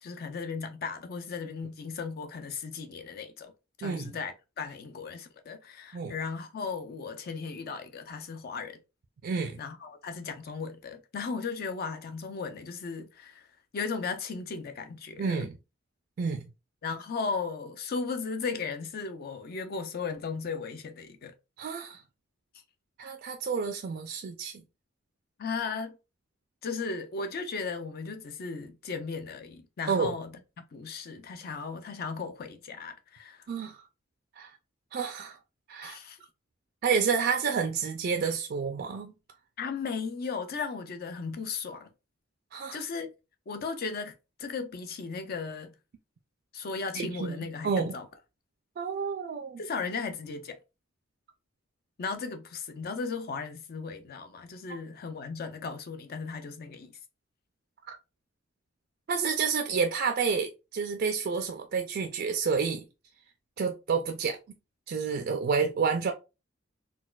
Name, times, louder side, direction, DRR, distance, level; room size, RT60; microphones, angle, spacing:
voice 1, 0.0-3.5 3.8-8.8 9.6-13.5 13.7-15.5 16.8-21.3 25.4-26.0 26.6-33.5 35.8-36.2 39.6-41.9 42.7-43.1 43.5-44.1 44.4-45.7 46.5-48.0 49.6-50.6 52.0-56.9, left 5 dB, 50° left, 0.4 m, -36 dB
voice 2, 3.8-4.2 5.9-6.1 9.2-9.6 15.2-15.6 16.2-16.5 21.6-22.0 23.0-24.6 29.9-30.1 33.5-33.8 34.4-34.5 34.9-35.4 35.7-36.0 36.8-39.1 42.5-42.8 46.9-47.4 47.6-47.9 48.8-49.6 59.1-62.8 63.6-64.4 64.9-66.1, right 5 dB, 50° right, 0.4 m, -29 dB
4.0 x 2.3 x 2.3 m
head